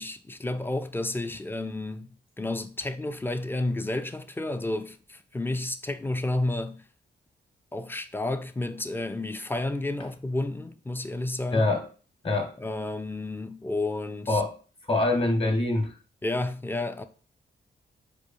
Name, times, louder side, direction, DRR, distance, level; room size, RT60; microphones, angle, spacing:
voice 1, 0.0-2.1 2.4-6.8 7.7-11.7 12.6-14.4 16.2-17.0, left 2 dB, 10° left, 0.4 m, -31 dB
voice 2, 11.5-11.9 12.2-12.5 14.3-14.6 14.9-15.9, left 2 dB, 30° left, 0.9 m, -24 dB
4.4 x 2.3 x 2.4 m
supercardioid pair, 50°, 20 cm